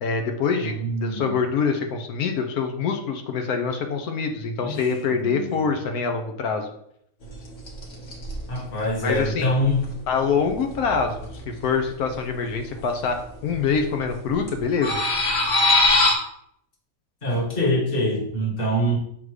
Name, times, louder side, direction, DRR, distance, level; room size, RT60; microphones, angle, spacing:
voice 1, 0.0-6.7 9.0-9.5 10.1-11.3 11.6-15.0, left 5 dB, 90° left, 5 dB, 1.2 m, -25 dB
voice 2, 0.6-1.3 4.6-5.5 8.5-9.9 17.2-19.0, equal, 40° left, -1 dB, 1.6 m, -25 dB
sound 1, 7.2-7.4 7.7-11.5 11.8-11.9 12.1-13.2 13.5-14.1 14.4-16.1, left 2 dB, 65° left, 1.7 m, -22 dB
6.4 x 3.6 x 4.8 m, 0.72 s
omnidirectional pair, 1.5 m